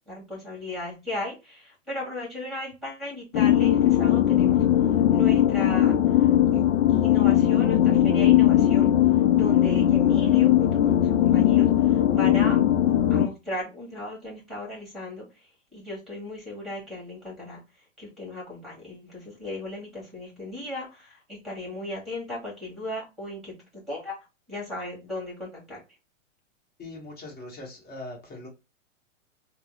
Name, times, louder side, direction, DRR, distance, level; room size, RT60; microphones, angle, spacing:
voice 1, 0.1-4.6 5.1-6.6 6.9-8.9 9.3-12.6 13.1-15.2 15.7-17.6 18.0-23.5 23.9-24.1 24.5-25.8, left 2 dB, ahead, -1 dB, 1.6 m, -36 dB
sound 1, 3.3-13.3, left 11 dB, 70° left, 0.5 m, -19 dB
voice 2, 26.8-28.5, left 2 dB, 25° left, -2 dB, 1.3 m, -41 dB
3.3 x 2.1 x 3.1 m, 0.27 s
hypercardioid pair, 120°, 39 cm